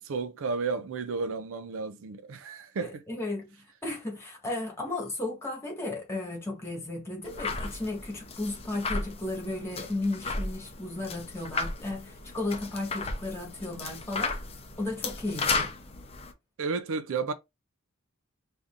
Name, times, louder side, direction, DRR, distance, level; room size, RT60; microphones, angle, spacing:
voice 1, 0.0-3.0 16.6-17.3, right 4 dB, 65° right, 0.4 m, -32 dB
voice 2, 2.8-3.6 3.8-14.3 14.8-15.7, left 2 dB, 10° left, 1.5 m, -34 dB
sound 1, 7.2-16.3, left 3 dB, 30° left, 0.6 m, -35 dB
4.9 x 2.7 x 2.4 m
head